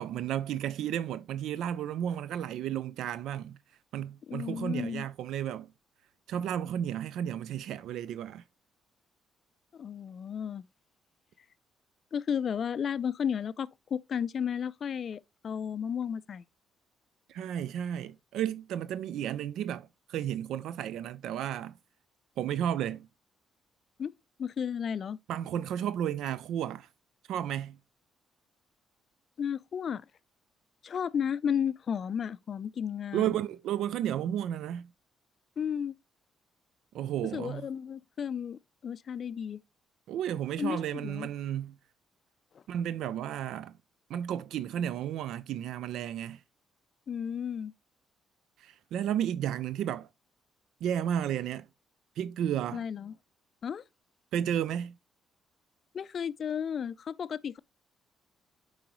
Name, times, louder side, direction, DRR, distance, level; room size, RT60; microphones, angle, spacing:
voice 1, 0.0-3.6 3.9-5.7 6.3-8.4 17.3-21.8 22.4-23.1 25.3-26.9 27.3-27.8 33.1-34.9 36.9-37.7 40.1-41.8 42.7-43.8 44.1-46.4 48.6-50.1 50.8-51.7 52.2-52.8 54.3-54.9, right 10 dB, 80° right, 0.3 m, -33 dB
voice 2, 4.3-5.0 9.7-10.6 12.1-16.4 24.0-24.1 24.4-25.2 29.4-30.0 30.8-33.3 35.6-35.9 37.3-39.6 40.6-41.3 47.1-47.7 52.7-53.1 53.6-53.8 55.9-57.6, left 8 dB, 50° left, 0.4 m, -33 dB
7.7 x 4.8 x 3.0 m
cardioid pair, 90°, 0 cm